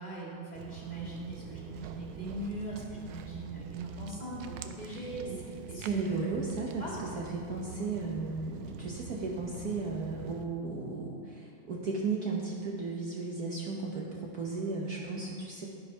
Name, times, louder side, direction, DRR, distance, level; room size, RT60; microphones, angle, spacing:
voice 1, 0.0-6.2 6.8-6.9 14.9-15.0, right 1 dB, 20° left, -5 dB, 1.9 m, -40 dB
Walk footsteps, 0.6-10.4, right 9 dB, 90° right, 1.4 m, -45 dB
voice 2, 5.8-6.9 7.2-15.7, right 3 dB, 55° right, -2 dB, 1.2 m, -35 dB
13.0 x 5.2 x 5.4 m, 2.3 s
omnidirectional pair, 2.2 m